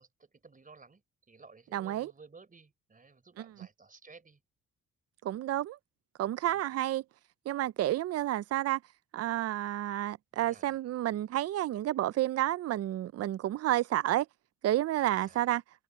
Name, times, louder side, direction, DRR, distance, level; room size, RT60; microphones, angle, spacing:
voice 1, 0.0-4.4 6.5-6.7 10.3-10.8 15.0-15.4, right 4 dB, 25° right, 3.8 m, -56 dB
voice 2, 1.7-2.1 5.2-5.8 6.2-7.0 7.5-8.8 9.1-14.3 14.6-15.6, right 13 dB, 55° right, 0.5 m, -30 dB
cardioid pair, 90°, 30 cm